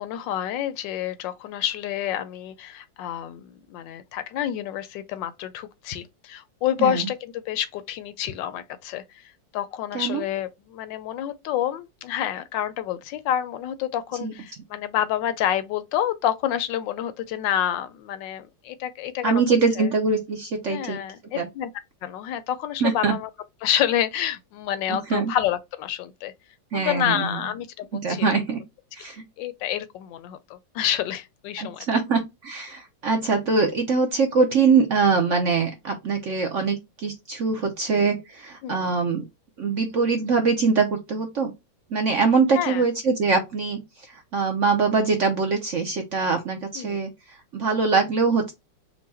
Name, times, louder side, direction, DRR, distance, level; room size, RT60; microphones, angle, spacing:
voice 1, 0.0-9.2 9.5-19.4 19.8-19.9 20.7-21.7 22.0-23.3 23.6-26.3 26.7-28.3 29.4-31.9 38.6-38.9 42.5-42.8 46.7-47.0, left 11 dB, 80° left, 1.2 m, -28 dB
voice 2, 19.2-21.0 21.3-21.5 22.8-23.1 24.9-25.3 26.7-27.4 28.0-28.6 28.9-29.2 31.6-39.2 39.6-41.5 41.9-43.8 44.1-48.5, right 4 dB, 60° right, 0.8 m, -23 dB
4.6 x 2.2 x 4.1 m
omnidirectional pair, 2.0 m